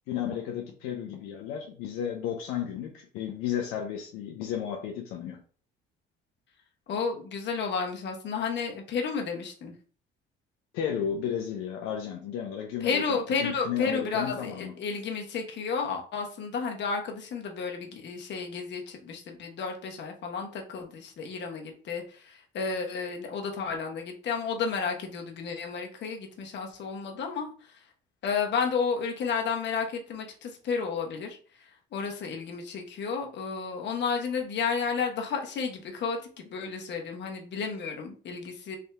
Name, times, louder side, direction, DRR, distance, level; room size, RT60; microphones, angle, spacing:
voice 1, 0.1-5.4 10.7-14.8, left 9 dB, 90° left, 0.6 m, -33 dB
voice 2, 6.9-9.7 12.8-27.5 28.2-31.4 31.9-38.8, left 5 dB, 55° left, 1.0 m, -32 dB
3.4 x 2.7 x 3.4 m
cardioid pair, 90°, 21 cm